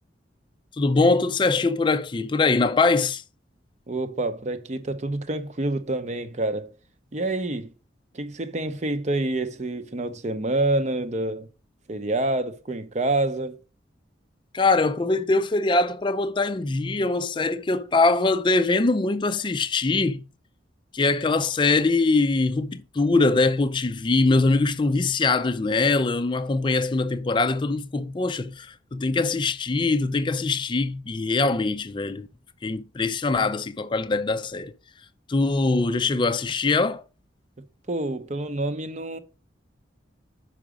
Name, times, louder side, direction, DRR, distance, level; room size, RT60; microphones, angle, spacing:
voice 1, 0.8-3.2 14.5-20.2 20.9-32.3 32.6-34.7 35.3-37.0, left 3 dB, 25° left, 0.4 m, -22 dB
voice 2, 3.9-6.7 7.1-7.7 8.1-11.5 11.9-13.6 37.9-39.2, right 2 dB, 40° right, 0.7 m, -27 dB
6.1 x 4.9 x 4.9 m
head